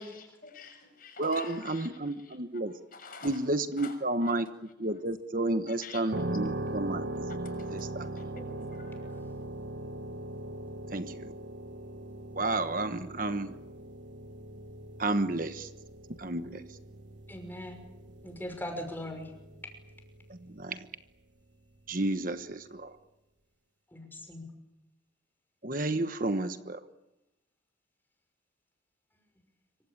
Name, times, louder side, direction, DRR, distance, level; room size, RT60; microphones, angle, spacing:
voice 1, 0.0-2.4 2.9-3.5 3.8-3.9 4.2-4.3 4.9-5.0 5.7-6.0 7.4-9.3, left 4 dB, 45° left, 6 dB, 6.7 m, -49 dB
voice 2, 1.2-2.8 3.2-4.5 4.8-7.1 7.7-8.1 10.9-11.3 12.3-13.5 15.0-15.7 16.1-16.8 20.3-20.9 21.9-23.0 25.6-26.8, right 2 dB, 45° right, 9 dB, 1.2 m, -31 dB
sound 1, 6.1-20.8, right 1 dB, 65° right, 1.5 m, -40 dB
voice 3, 17.3-17.8 18.2-19.3 23.9-24.4, left 1 dB, 10° left, 4 dB, 5.9 m, -39 dB
26.5 x 24.5 x 8.7 m, 0.93 s
head